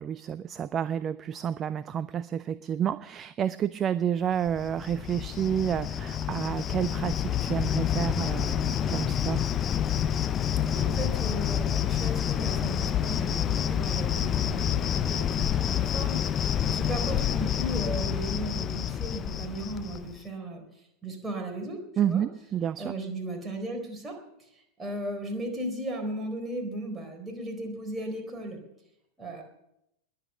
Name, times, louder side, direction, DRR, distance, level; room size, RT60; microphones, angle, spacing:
voice 1, 0.0-9.5 22.0-22.9, right 9 dB, 25° right, 16 dB, 0.4 m, -30 dB
Cricket, 4.5-20.2, left 9 dB, 25° left, 0.6 m, -28 dB
voice 2, 10.7-20.6 21.0-22.2 22.8-28.6 29.2-29.4, right 1 dB, 10° right, 1 dB, 4.1 m, -36 dB
21.0 x 8.2 x 6.9 m, 0.81 s
figure-of-eight pair, 90°, 0 cm